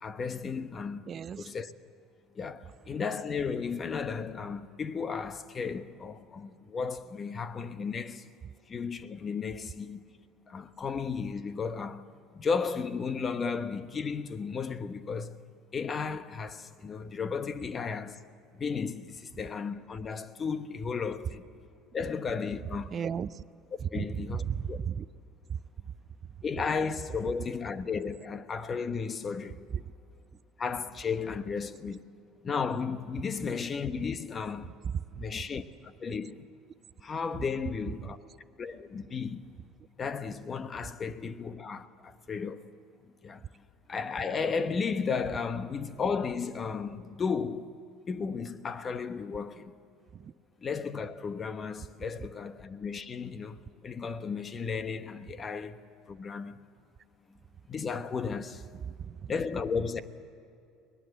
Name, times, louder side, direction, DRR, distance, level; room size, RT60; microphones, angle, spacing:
voice 1, 0.0-1.0 1.4-1.7 2.3-8.3 8.7-10.0 10.5-12.0 12.3-15.4 15.7-18.2 18.5-21.5 21.9-22.9 23.9-24.8 26.4-29.6 30.6-32.0 32.4-34.7 35.2-36.5 37.0-38.2 38.6-39.4 40.0-42.7 43.2-43.5 43.9-47.8 48.1-49.7 50.6-55.8 56.1-56.6 57.7-58.6 59.3-60.0, left 5 dB, 35° left, 1.1 m, -34 dB
voice 2, 1.1-1.5 22.9-23.4 23.9-25.1 25.5-25.6 50.1-50.3 58.9-59.3, right 8 dB, 40° right, 0.6 m, -35 dB
22.5 x 19.5 x 7.9 m
supercardioid pair, 80°, 0 cm